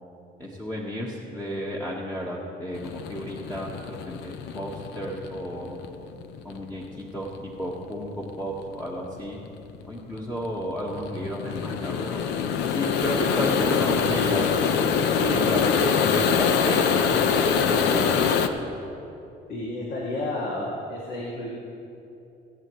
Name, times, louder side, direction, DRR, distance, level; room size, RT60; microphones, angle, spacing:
voice 1, 0.4-5.8 6.4-7.3 7.6-9.4 9.9-12.2 12.7-14.7 15.0-17.1 17.5-18.1, equal, 10° left, -4 dB, 1.3 m, -32 dB
sound 1, 2.7-18.5, left 6 dB, 85° left, 0.7 m, -24 dB
voice 2, 19.5-21.5, left 2 dB, 60° left, -5 dB, 2.1 m, -31 dB
22.5 x 8.4 x 3.1 m, 2.9 s
cardioid pair, 110°, 17 cm